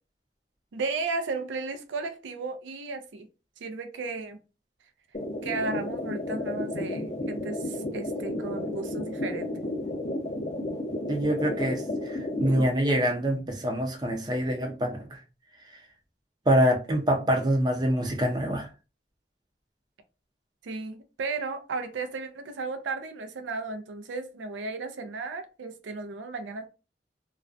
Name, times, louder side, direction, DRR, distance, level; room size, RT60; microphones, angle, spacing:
voice 1, 0.7-3.3 3.6-4.4 5.4-9.5 20.6-26.7, right 3 dB, 85° right, 0.4 m, -34 dB
sound 1, 5.1-12.7, left 1 dB, 35° left, 0.6 m, -32 dB
voice 2, 11.1-15.1 16.5-18.7, equal, 25° right, 0.5 m, -25 dB
2.4 x 2.1 x 2.4 m
head